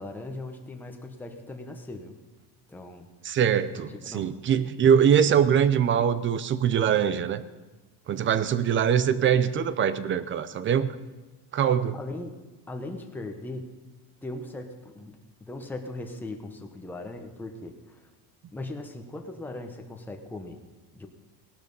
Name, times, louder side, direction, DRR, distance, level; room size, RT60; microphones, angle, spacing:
voice 1, 0.0-2.1 2.7-3.1 3.7-4.3 11.9-13.7 14.2-15.1 15.5-18.1 18.5-20.6 20.9-21.1, left 2 dB, 5° left, 3 dB, 1.0 m, -39 dB
voice 2, 3.2-7.4 8.1-10.9 11.5-12.0, right 8 dB, 30° right, 15 dB, 0.5 m, -23 dB
18.0 x 11.5 x 5.4 m, 1.2 s
cardioid pair, 170°, 41 cm